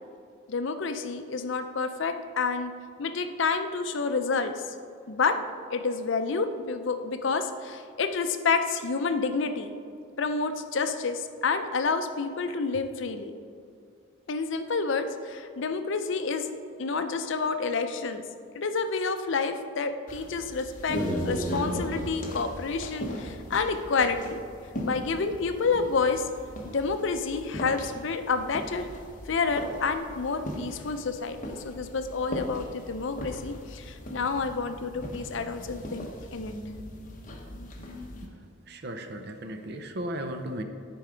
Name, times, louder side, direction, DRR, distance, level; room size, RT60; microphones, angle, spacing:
voice 1, 0.5-2.7 3.0-4.6 5.1-5.4 5.7-9.7 10.2-13.3 14.3-16.5 16.8-18.2 18.5-24.4 24.8-26.3 26.6-28.9 29.3-36.5, left 4 dB, 60° left, 8 dB, 0.5 m, -29 dB
sound 1, 20.1-38.3, equal, 40° left, 0.9 m, -38 dB
voice 2, 38.7-40.6, right 1 dB, 50° right, 7 dB, 0.6 m, -35 dB
10.5 x 4.6 x 5.0 m, 2.3 s
head